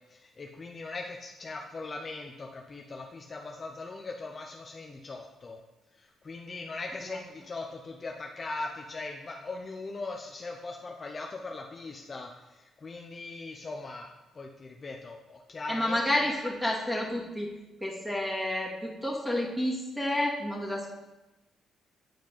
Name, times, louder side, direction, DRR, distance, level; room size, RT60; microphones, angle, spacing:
voice 1, 0.1-5.6 5.9-16.3, left 3 dB, 35° left, 1 dB, 0.7 m, -40 dB
voice 2, 15.7-17.5 17.8-20.9, left 1 dB, ahead, -2 dB, 2.1 m, -30 dB
9.2 x 4.9 x 4.6 m, 1.0 s
cardioid pair, 90°, 0 cm